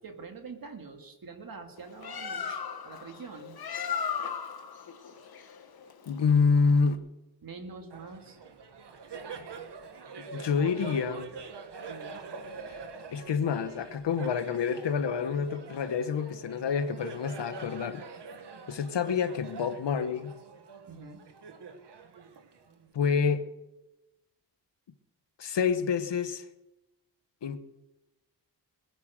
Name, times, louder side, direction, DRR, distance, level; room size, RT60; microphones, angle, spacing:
voice 1, 0.0-3.6 7.4-8.4 11.9-12.2 20.9-21.2, right 4 dB, 55° right, 2.2 m, -45 dB
Bird, 1.8-7.0, left 7 dB, 60° left, 1.4 m, -37 dB
voice 2, 6.1-7.0 10.3-11.3 13.1-18.0 18.7-20.3 22.9-23.5 25.4-26.4 27.4-27.6, left 5 dB, 90° left, 1.2 m, -27 dB
Laughter, 7.9-22.9, right 4 dB, 80° right, 1.6 m, -45 dB
21.0 x 9.7 x 6.5 m
wide cardioid pair, 165°, 41 cm